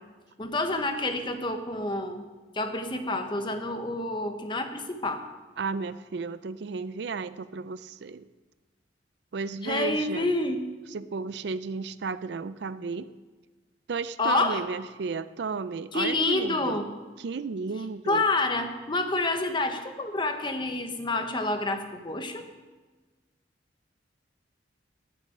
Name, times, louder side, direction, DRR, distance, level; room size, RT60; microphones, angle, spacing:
voice 1, 0.4-2.2 2.5-5.2 9.6-10.6 14.2-14.6 15.9-16.9 18.1-22.5, left 2 dB, 25° left, 7 dB, 1.0 m, -28 dB
voice 2, 5.6-8.3 9.3-10.3 10.9-13.1 13.9-16.8 17.2-18.2, right 4 dB, 65° right, 14 dB, 0.4 m, -33 dB
12.0 x 7.3 x 8.8 m, 1.3 s
head